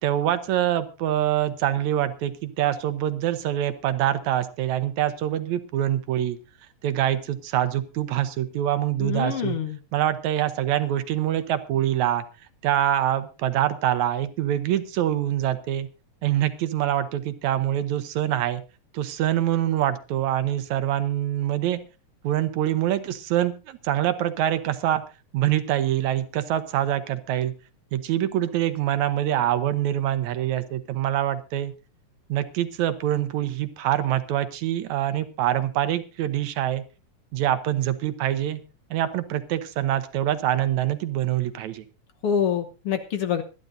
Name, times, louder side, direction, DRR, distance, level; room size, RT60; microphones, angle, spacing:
voice 1, 0.0-6.4 6.8-9.6 9.9-12.2 12.6-15.9 16.2-18.6 18.9-21.8 22.2-25.0 25.3-27.5 27.9-31.7 32.3-36.8 37.3-38.6 38.9-41.8, right 12 dB, 75° right, 11 dB, 2.3 m, -25 dB
voice 2, 9.0-9.8 42.2-43.4, left 8 dB, 60° left, 7 dB, 1.8 m, -26 dB
24.5 x 10.5 x 2.7 m, 0.31 s
omnidirectional pair, 3.4 m